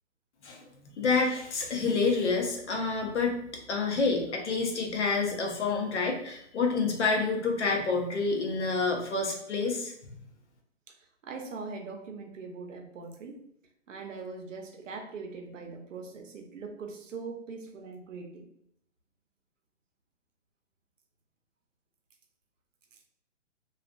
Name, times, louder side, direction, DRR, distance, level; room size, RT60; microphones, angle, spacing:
voice 1, 1.0-3.3 3.7-9.9, left 4 dB, 65° left, 1 dB, 0.7 m, -28 dB
voice 2, 10.9-13.4 13.9-18.5 22.9-23.0, right 4 dB, 80° right, 4 dB, 0.6 m, -41 dB
2.4 x 2.4 x 2.2 m, 0.73 s
hypercardioid pair, 180°, 37 cm